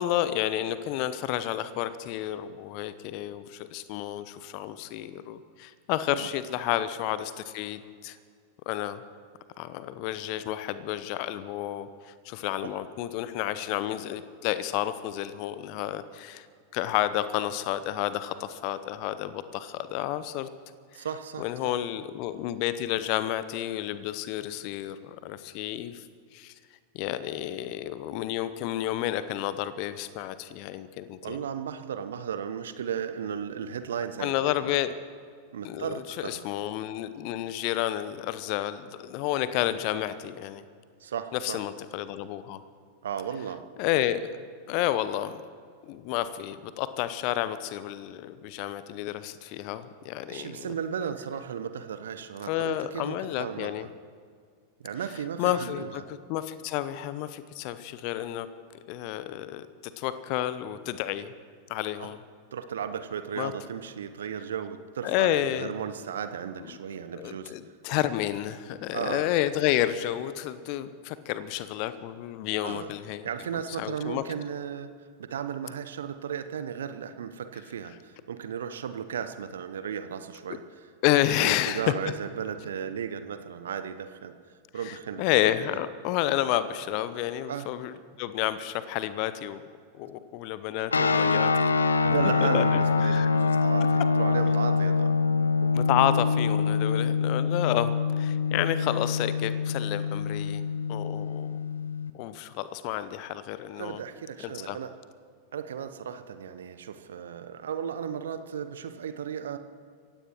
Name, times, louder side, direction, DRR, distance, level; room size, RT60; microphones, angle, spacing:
voice 1, 0.0-8.2 8.7-9.0 9.6-16.5 16.7-20.5 20.9-21.1 21.4-26.1 26.3-26.5 26.9-31.4 34.2-34.9 35.6-40.6 41.3-42.6 43.8-44.4 44.7-45.4 45.8-50.7 52.5-53.9 55.4-58.5 58.9-61.3 61.7-62.2 63.4-63.5 65.0-65.7 67.1-73.3 73.8-74.2 81.0-81.9 84.8-89.6 90.0-91.7 92.4-92.6 93.0-93.3 95.7-100.6 100.9-101.6 102.1-104.0 104.4-104.8, left 13 dB, 45° left, 14 dB, 0.8 m, -30 dB
voice 2, 20.9-21.7 31.2-34.4 35.5-36.5 41.0-41.6 43.0-43.6 50.3-53.9 54.8-56.0 62.0-62.1 62.5-67.5 68.9-69.3 72.6-72.9 73.2-74.9 75.2-80.6 81.4-84.3 84.7-85.5 87.5-87.7 92.0-95.2 95.6-95.7 103.8-104.9 105.5-109.6, right 8 dB, 65° right, 10 dB, 0.8 m, -35 dB
sound 1, 90.9-102.1, left 5 dB, 75° left, 0.6 m, -25 dB
26.5 x 16.0 x 3.1 m, 2.1 s
figure-of-eight pair, 90°, 0 cm